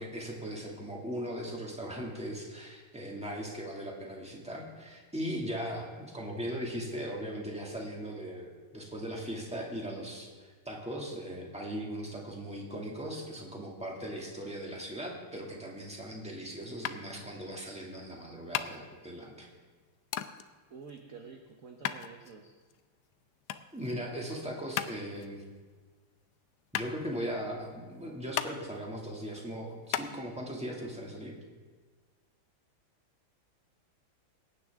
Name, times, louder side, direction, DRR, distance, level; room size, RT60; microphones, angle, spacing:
voice 1, 0.0-19.5 23.7-25.4 26.7-31.3, equal, 5° right, -2 dB, 1.8 m, -39 dB
sound 1, 16.8-30.1, left 11 dB, 85° left, 0.8 m, -39 dB
voice 2, 20.7-22.5, right 5 dB, 55° right, 4 dB, 1.0 m, -49 dB
21.5 x 9.7 x 3.6 m, 1.4 s
omnidirectional pair, 2.4 m